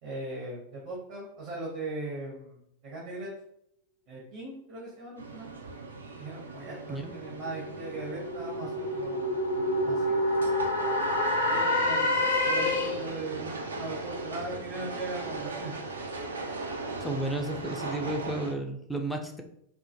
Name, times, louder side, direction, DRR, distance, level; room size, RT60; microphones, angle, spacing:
voice 1, 0.0-3.3 4.1-5.5 6.2-9.4 9.8-10.2 11.4-15.7, right 2 dB, 45° right, -4 dB, 0.7 m, -39 dB
sound 1, 5.2-18.5, right 3 dB, 70° right, 0.3 m, -39 dB
sound 2, 7.0-13.2, left 1 dB, 70° left, 0.5 m, -28 dB
voice 2, 17.0-19.4, right 2 dB, 5° left, 3 dB, 0.3 m, -33 dB
2.2 x 2.0 x 2.8 m, 0.72 s
figure-of-eight pair, 90°, 0 cm